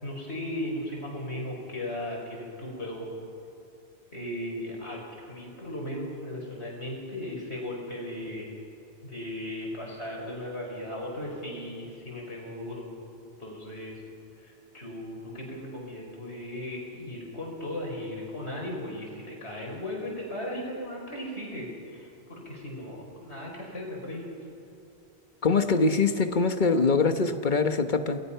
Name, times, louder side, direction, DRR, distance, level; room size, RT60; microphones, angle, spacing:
voice 1, 0.0-3.1 4.1-8.6 9.0-13.0 13.4-14.0 14.4-24.3, left 1 dB, 80° left, -1 dB, 5.6 m, -37 dB
voice 2, 25.4-28.2, left 4 dB, 45° left, 8 dB, 1.3 m, -23 dB
28.5 x 20.5 x 5.7 m, 2.8 s
omnidirectional pair, 1.1 m